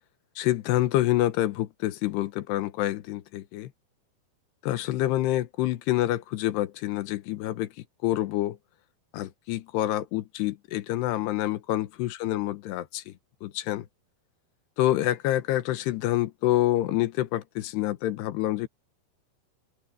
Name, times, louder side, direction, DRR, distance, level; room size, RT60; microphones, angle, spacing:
voice 1, 0.4-3.7 4.6-7.7 8.0-8.6 9.1-13.1 13.4-13.9 14.8-18.7, left 15 dB, 80° left, 3.0 m, -27 dB
open air
omnidirectional pair, 5.0 m